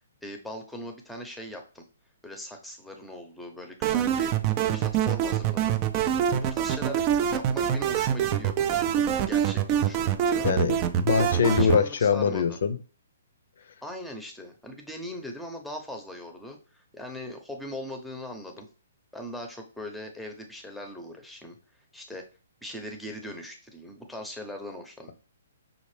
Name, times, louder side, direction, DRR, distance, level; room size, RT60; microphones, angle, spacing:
voice 1, 0.2-1.8 2.2-4.3 4.6-5.8 6.3-8.5 9.2-10.5 11.1-12.6 13.8-18.7 19.1-21.6 21.9-22.2 22.6-25.1, equal, ahead, 3 dB, 0.7 m, -40 dB
sound 1, 3.8-11.8, right 9 dB, 30° right, 0.4 m, -25 dB
voice 2, 10.4-12.8, left 6 dB, 60° left, 10 dB, 0.6 m, -23 dB
5.6 x 2.5 x 3.3 m, 0.35 s
hypercardioid pair, 135°, 0 cm